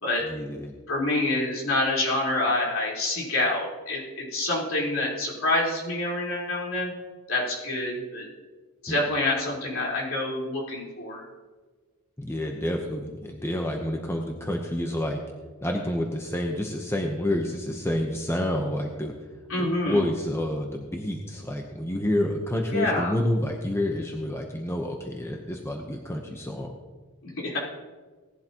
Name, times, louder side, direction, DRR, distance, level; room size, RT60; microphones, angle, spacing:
voice 1, 0.3-0.7 8.9-9.0 12.2-15.2 15.6-19.1 19.6-26.7, left 1 dB, 10° left, 2 dB, 0.8 m, -29 dB
voice 2, 0.9-6.9 7.3-8.3 8.8-11.3 19.5-20.0 22.7-23.1 27.2-27.6, left 2 dB, 60° left, -4 dB, 4.1 m, -27 dB
18.0 x 11.5 x 3.0 m, 1.4 s
head